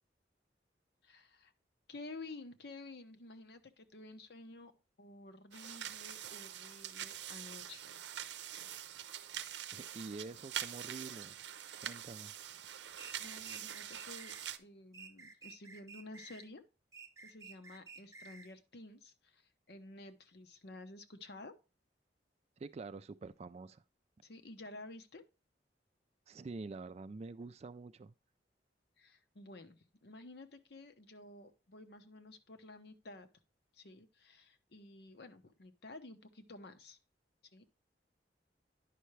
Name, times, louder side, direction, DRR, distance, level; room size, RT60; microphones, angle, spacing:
voice 1, 1.0-1.5 1.9-4.7 5.0-8.0 13.2-16.6 17.2-21.5 24.2-25.2 29.0-33.3 33.7-37.0 37.5-37.6, left 2 dB, 65° left, 0.9 m, -52 dB
sound 1, 5.5-14.6, right 10 dB, 85° right, 0.6 m, -45 dB
voice 2, 9.7-11.3 11.8-12.3 22.6-23.8 26.3-28.1, right 3 dB, 35° right, 0.3 m, -47 dB
sound 2, 13.0-14.4 14.9-16.5 16.9-18.5, right 4 dB, 20° right, 0.7 m, -53 dB
10.0 x 5.6 x 3.2 m
head